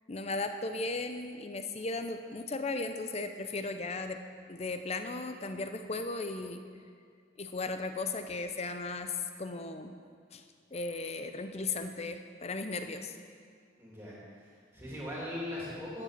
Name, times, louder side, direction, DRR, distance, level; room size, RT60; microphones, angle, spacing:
voice 1, 0.1-4.2 4.5-6.6 7.4-9.9 10.3-10.4 10.7-13.1, left 3 dB, 35° left, 8 dB, 0.6 m, -36 dB
voice 2, 13.8-16.0, left 1 dB, 10° right, -6 dB, 2.9 m, -40 dB
10.5 x 7.6 x 6.7 m, 2.1 s
head